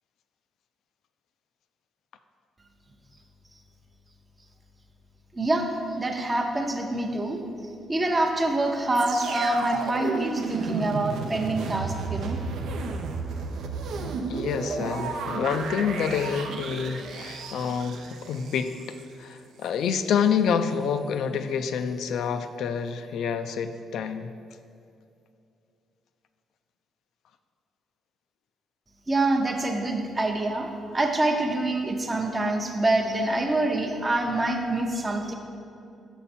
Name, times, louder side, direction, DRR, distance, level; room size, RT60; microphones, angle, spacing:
voice 1, 5.3-5.7 6.0-7.4 7.9-12.4 29.1-35.3, right 2 dB, 25° right, 2 dB, 0.6 m, -26 dB
sound 1, 8.9-19.0 19.6-19.7, right 4 dB, 75° right, 0.5 m, -33 dB
voice 2, 14.3-18.7 19.2-24.3, left 7 dB, 75° left, 9 dB, 0.3 m, -27 dB
5.8 x 5.6 x 4.2 m, 2.5 s
cardioid pair, 90°, 0 cm